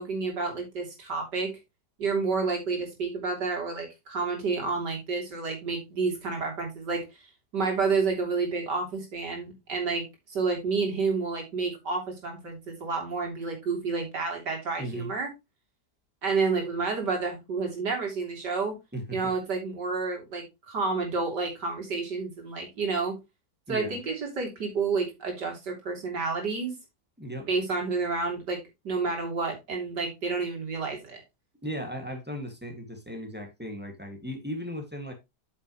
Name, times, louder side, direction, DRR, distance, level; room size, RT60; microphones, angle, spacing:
voice 1, 0.0-1.6 2.0-7.0 7.5-15.3 16.2-18.8 19.1-23.2 23.7-26.7 27.5-31.2, right 4 dB, 75° right, 3.7 m, -30 dB
voice 2, 14.8-15.1 18.9-19.2 23.7-24.0 27.2-27.5 31.6-35.1, equal, 5° right, 2.0 m, -36 dB
8.6 x 7.0 x 3.1 m
omnidirectional pair, 1.9 m